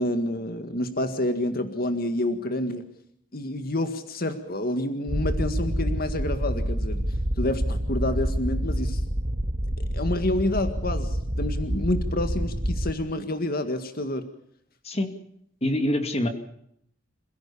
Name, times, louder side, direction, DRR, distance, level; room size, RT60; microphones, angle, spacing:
voice 1, 0.0-2.8 3.3-7.0 7.4-9.0 9.8-14.2, left 1 dB, 50° left, 8 dB, 1.9 m, -28 dB
sound 1, 5.1-12.9, equal, 45° right, 1.9 m, -27 dB
voice 2, 15.6-16.3, left 1 dB, 35° left, 7 dB, 2.4 m, -25 dB
27.0 x 16.5 x 7.1 m, 0.70 s
head